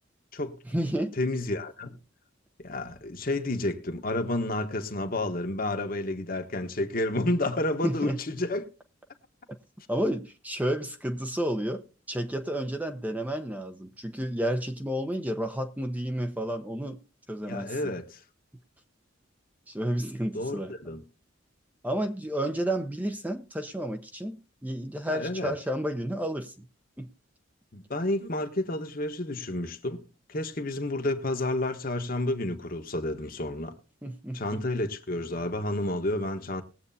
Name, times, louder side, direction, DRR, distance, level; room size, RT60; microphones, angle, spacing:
voice 1, 0.7-1.2 7.8-8.2 9.9-17.0 17.3-17.9 19.7-20.7 21.8-24.4 24.6-26.7 27.0-27.1 34.0-34.6, right 1 dB, 10° right, 0.7 m, -31 dB
voice 2, 1.2-2.0 2.6-8.7 17.5-18.2 20.3-21.0 25.1-25.5 27.7-30.0 30.3-33.7 34.3-36.6, left 1 dB, 45° left, 1.2 m, -30 dB
20.5 x 8.1 x 2.7 m
head